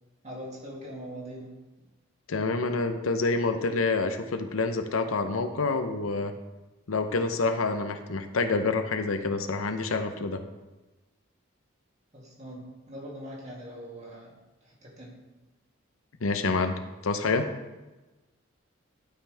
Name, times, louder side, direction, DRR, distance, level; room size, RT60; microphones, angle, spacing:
voice 1, 0.2-1.6 12.1-14.3 14.6-15.1, equal, 35° right, -4 dB, 2.3 m, -42 dB
voice 2, 2.3-6.3 6.9-10.4 16.2-17.5, left 3 dB, 85° left, 7 dB, 0.7 m, -27 dB
12.0 x 5.7 x 3.4 m, 1.1 s
head